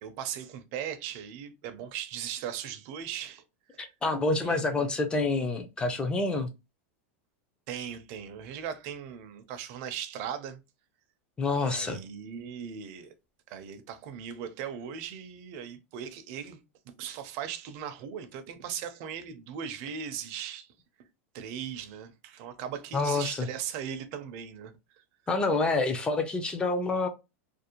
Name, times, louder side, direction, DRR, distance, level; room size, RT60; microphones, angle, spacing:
voice 1, 0.0-3.4 3.7-3.8 4.3-4.9 7.7-10.6 11.6-13.1 13.5-16.6 17.0-20.7 21.3-25.0, right 8 dB, 50° right, 0.5 m, -38 dB
voice 2, 3.8-6.5 11.4-12.0 22.9-23.5 25.3-27.1, left 3 dB, 10° left, 0.4 m, -27 dB
2.5 x 2.0 x 2.8 m
supercardioid pair, 145°, 7 cm